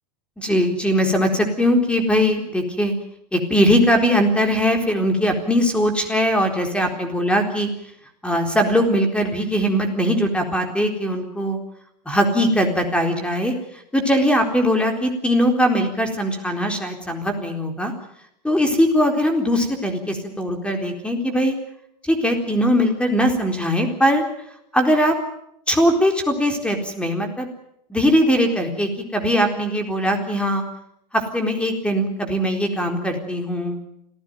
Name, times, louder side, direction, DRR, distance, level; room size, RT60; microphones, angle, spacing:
voice 1, 0.4-2.9 3.3-7.7 8.2-11.6 12.1-17.9 18.4-21.6 22.0-24.3 24.7-25.1 25.7-27.5 27.9-30.6 31.1-33.8, equal, 5° left, 4 dB, 4.1 m, -20 dB
26.0 x 15.5 x 9.2 m, 0.75 s
hypercardioid pair, 105°, 21 cm